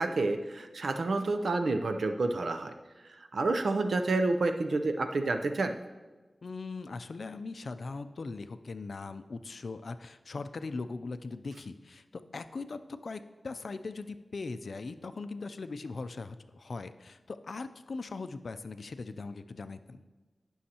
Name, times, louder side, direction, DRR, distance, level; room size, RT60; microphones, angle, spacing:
voice 1, 0.0-2.7 3.2-5.7, right 3 dB, 80° right, 7 dB, 0.6 m, -29 dB
voice 2, 6.4-20.0, left 3 dB, 75° left, 11 dB, 0.4 m, -40 dB
15.0 x 6.3 x 2.9 m, 1.3 s
wide cardioid pair, 55°, 0 cm